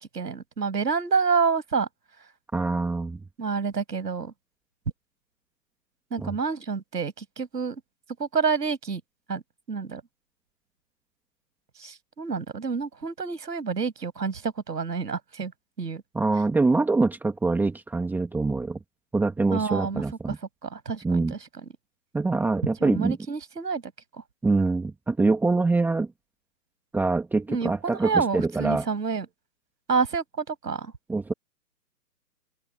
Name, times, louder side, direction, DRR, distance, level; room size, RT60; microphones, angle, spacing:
voice 1, 0.0-1.9 3.4-4.3 6.1-7.8 8.2-9.0 9.3-9.4 9.7-10.0 11.8-15.5 15.8-16.0 19.5-20.3 20.6-21.4 22.8-23.8 24.1-24.2 27.5-29.3 29.9-30.9, right 5 dB, 80° right, 7.0 m, -28 dB
voice 2, 2.5-3.2 6.2-6.3 16.1-18.8 19.1-20.4 21.0-21.3 22.1-23.2 24.4-26.1 26.9-28.9 31.1-31.3, right 3 dB, 5° right, 2.0 m, -24 dB
open air
hypercardioid pair, 145°, 48 cm